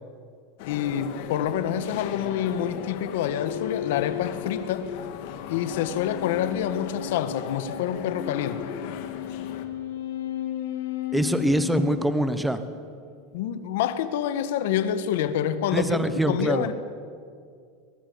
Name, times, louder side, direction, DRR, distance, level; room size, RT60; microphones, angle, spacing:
voice 1, 0.6-4.9 5.5-8.7 13.3-16.7, left 10 dB, 70° left, 11 dB, 1.7 m, -27 dB
sound 1, 0.6-9.7, left 9 dB, 55° left, 2.1 m, -38 dB
sound 2, 3.2-12.9, left 12 dB, 85° left, 2.8 m, -35 dB
voice 2, 11.1-12.6 15.7-16.7, right 1 dB, 5° right, 10 dB, 1.1 m, -24 dB
22.0 x 21.0 x 9.8 m, 2.2 s
supercardioid pair, 165°, 0 cm